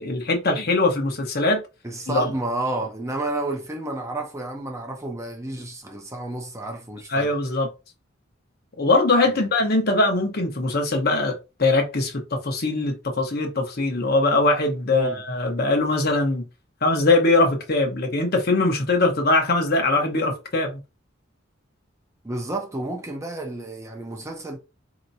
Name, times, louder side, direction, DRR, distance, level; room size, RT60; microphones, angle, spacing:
voice 1, 0.0-1.6 2.1-2.3 7.1-7.7 8.8-16.4 16.8-20.8, left 2 dB, 50° left, 1.0 m, -21 dB
voice 2, 1.8-7.3 9.3-9.5 14.9-15.2 22.2-24.6, right 2 dB, 15° right, 0.7 m, -31 dB
4.4 x 2.9 x 2.7 m
head